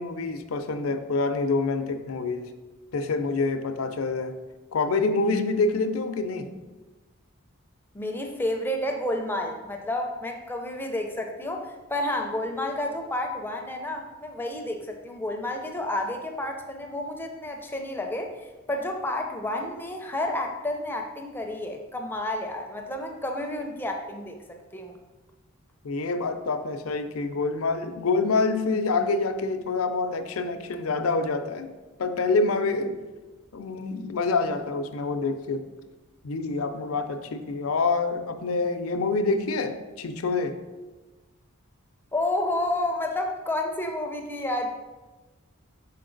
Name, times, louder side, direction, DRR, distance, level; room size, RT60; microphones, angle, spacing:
voice 1, 0.0-2.5 2.9-4.3 4.7-6.5 25.8-31.7 32.0-33.0 33.5-35.6 36.2-40.5, left 3 dB, 80° left, 9 dB, 0.5 m, -26 dB
voice 2, 7.9-24.9 42.1-44.7, left 1 dB, 10° left, 3 dB, 0.4 m, -30 dB
5.8 x 4.3 x 3.8 m, 1.2 s
head